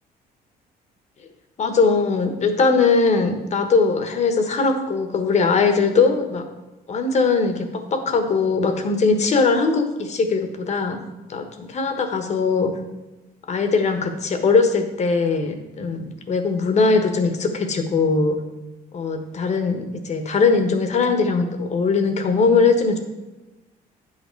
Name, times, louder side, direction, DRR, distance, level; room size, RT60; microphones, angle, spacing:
voice 1, 1.6-6.4 6.9-11.0 11.3-12.7 13.5-18.4 18.9-23.0, left 4 dB, 40° left, 7 dB, 1.3 m, -20 dB
9.5 x 6.0 x 4.6 m, 1.1 s
cardioid pair, 110°, 17 cm